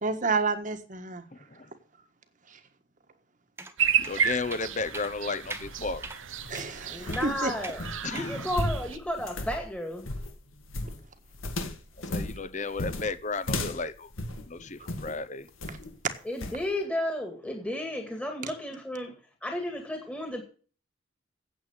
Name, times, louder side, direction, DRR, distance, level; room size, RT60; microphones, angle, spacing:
voice 1, 0.0-1.3 2.5-2.6 6.5-7.5 14.8-14.9 15.7-15.8, right 4 dB, 40° right, 7 dB, 1.5 m, -30 dB
sound 1, 3.6-3.7 4.0-4.2 4.5-4.7 4.9-5.1 5.5-5.7 6.0-6.2 6.5-6.7 7.1-7.3 7.6-7.8 8.2-8.3, right 3 dB, 10° right, 1.0 m, -40 dB
sound 2, 3.8-9.0, right 7 dB, 75° right, 0.9 m, -32 dB
voice 2, 4.0-6.0 8.0-8.5 12.1-14.1 14.5-15.5, left 3 dB, 35° left, 13 dB, 1.0 m, -33 dB
sound 3, 5.4-15.2 15.6-16.0 16.4-16.6, left 1 dB, 90° left, 2.0 m, -36 dB
voice 3, 6.9-10.1 16.3-20.4, left 1 dB, 5° left, 2 dB, 2.0 m, -33 dB
9.3 x 8.3 x 8.6 m, 0.42 s
head